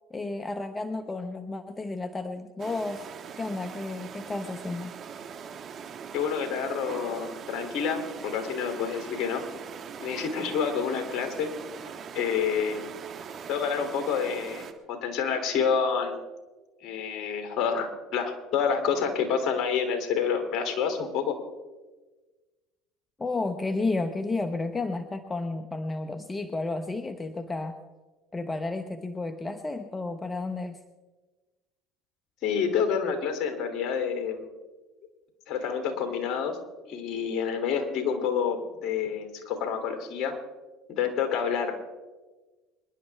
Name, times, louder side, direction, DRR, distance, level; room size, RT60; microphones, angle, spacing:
voice 1, 0.1-3.1 3.4-4.9 23.2-27.7 28.3-30.8, left 3 dB, 20° left, 8 dB, 1.1 m, -32 dB
sound 1, 2.6-14.7, right 7 dB, 45° right, 1.6 m, -41 dB
voice 2, 6.1-9.4 10.0-11.5 12.1-12.9 13.5-16.2 16.8-21.3 32.4-34.5 35.5-36.6 36.9-40.4 41.0-41.7, left 6 dB, 55° left, 6 dB, 3.2 m, -28 dB
26.5 x 11.0 x 3.6 m, 1.3 s
hypercardioid pair, 80°, 0 cm